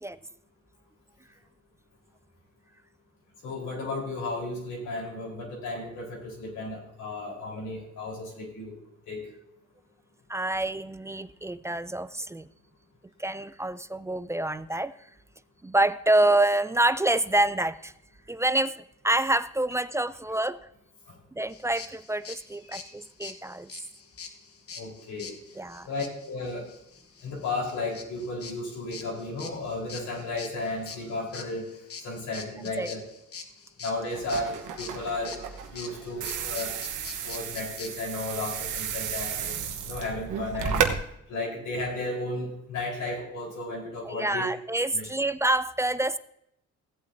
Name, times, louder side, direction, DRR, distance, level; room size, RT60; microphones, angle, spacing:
voice 1, 3.4-8.7 9.1-9.2 21.1-21.2 22.6-22.8 24.8-25.4 25.8-26.7 27.2-31.7 32.0-33.1 33.8-35.4 35.7-36.7 37.2-39.5 39.8-40.9 41.3-44.5 44.9-45.1, left 2 dB, 80° left, -2 dB, 4.2 m, -34 dB
voice 2, 10.3-12.5 13.2-14.9 15.6-17.9 18.3-20.7 21.4-23.7 25.6-25.9 32.8-32.9 44.0-46.2, right 1 dB, 10° right, 14 dB, 0.3 m, -27 dB
sound 1, 21.5-37.9, left 6 dB, 50° left, 1.4 m, -44 dB
sound 2, 34.1-41.0, right 7 dB, 85° right, 1.2 m, -33 dB
16.5 x 8.4 x 2.7 m, 0.77 s
cardioid pair, 90°, 30 cm